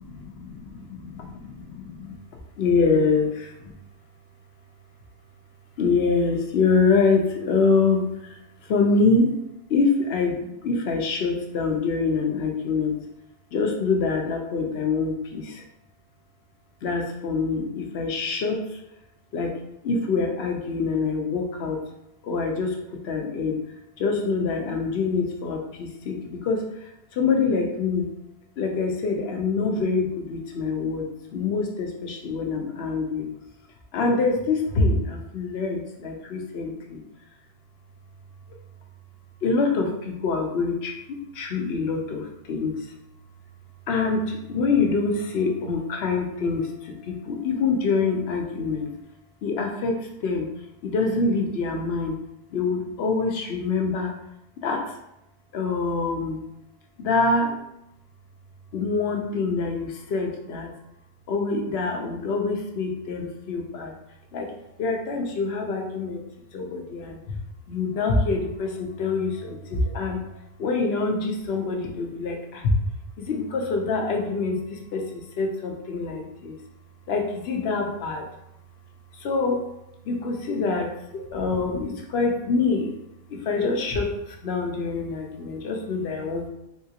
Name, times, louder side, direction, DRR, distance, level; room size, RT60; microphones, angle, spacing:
voice 1, 0.0-2.2 2.6-3.7 5.8-9.3 9.7-13.0 13.5-15.6 16.8-18.8 19.3-19.5 19.8-21.8 22.2-23.6 24.0-28.1 28.6-33.3 33.9-37.0 39.4-42.9 43.9-48.9 49.4-50.5 50.8-52.2 52.5-54.1 54.6-55.0 55.5-56.4 57.0-57.6 58.7-60.7 61.3-63.9 64.3-64.5 64.8-66.2 66.5-67.4 67.7-70.2 70.6-72.8 73.2-76.6 77.1-78.3 79.1-79.7 80.1-82.9 83.3-86.5, left 4 dB, 80° left, 2 dB, 0.8 m, -25 dB
3.7 x 2.4 x 2.7 m, 0.84 s
omnidirectional pair, 1.1 m